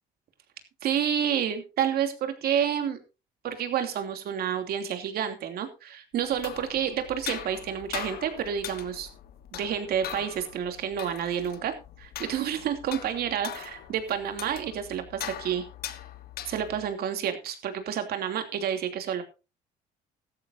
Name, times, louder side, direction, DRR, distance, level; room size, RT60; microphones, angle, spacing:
voice 1, 0.8-3.0 3.4-9.1 9.5-15.6 16.5-19.2, right 9 dB, 65° right, 6 dB, 2.9 m, -29 dB
sound 1, 6.2-16.9, left 11 dB, 65° left, 1.4 m, -41 dB
15.5 x 13.5 x 2.8 m, 0.29 s
cardioid pair, 110°, 17 cm